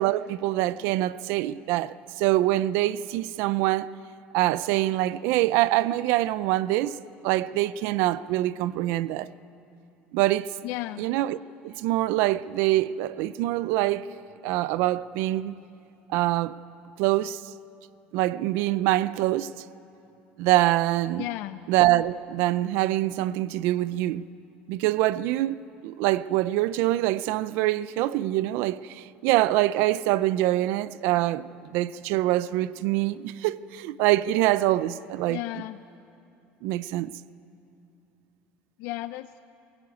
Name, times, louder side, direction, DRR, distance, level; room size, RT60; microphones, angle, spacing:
voice 1, 0.0-3.9 4.3-7.0 7.2-9.3 10.1-10.5 11.0-14.1 14.4-15.6 16.1-16.5 17.0-17.5 18.1-19.6 20.4-21.2 21.7-24.3 24.7-25.6 25.8-31.5 31.7-35.4 36.6-37.1, right 15 dB, 65° right, 0.5 m, -25 dB
voice 2, 10.6-11.0 21.2-21.6 35.3-35.8 38.8-39.4, left 17 dB, 65° left, 0.6 m, -34 dB
23.0 x 21.0 x 9.3 m
cardioid pair, 170°, 4 cm